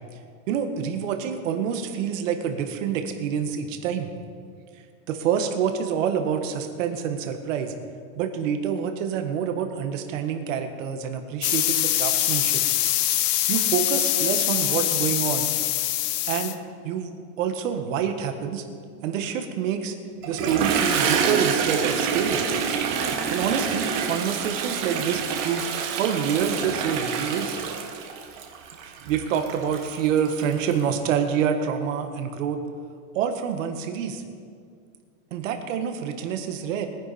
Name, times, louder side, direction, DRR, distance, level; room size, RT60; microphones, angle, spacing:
voice 1, 0.5-4.1 5.1-7.7 8.1-12.6 13.5-15.5 16.3-16.6 16.8-17.1 17.4-18.6 19.0-19.9 20.2-22.4 23.3-27.6 28.8-32.6 33.1-34.2 35.3-36.9, right 7 dB, 70° right, 6 dB, 1.6 m, -27 dB
sound 1, 11.4-16.5, left 13 dB, 35° left, 0.5 m, -24 dB
Toilet flush, 20.2-30.8, right 6 dB, 40° right, 1.4 m, -27 dB
21.5 x 10.0 x 4.3 m, 2.2 s
supercardioid pair, 180°, 39 cm